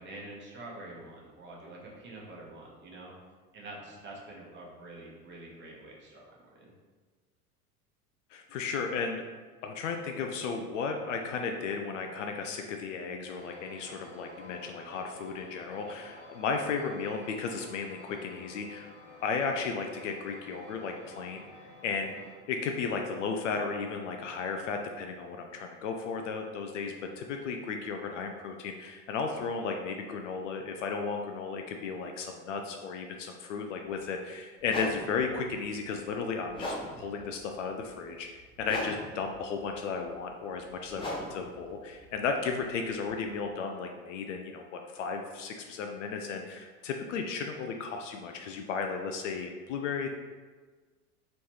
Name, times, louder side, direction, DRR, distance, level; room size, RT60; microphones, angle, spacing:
voice 1, 0.0-3.1 3.5-6.7, right 2 dB, 25° right, -4 dB, 1.0 m, -46 dB
voice 2, 8.3-9.3 9.6-18.9 19.2-38.3 38.6-50.1, left 5 dB, 55° left, 4 dB, 0.5 m, -34 dB
sound 1, 13.3-22.4, left 1 dB, 40° left, 0.9 m, -51 dB
sound 2, 33.8-34.0 34.6-43.4, left 1 dB, 10° left, 0.7 m, -41 dB
3.2 x 3.1 x 4.1 m, 1.4 s
figure-of-eight pair, 80°, 47 cm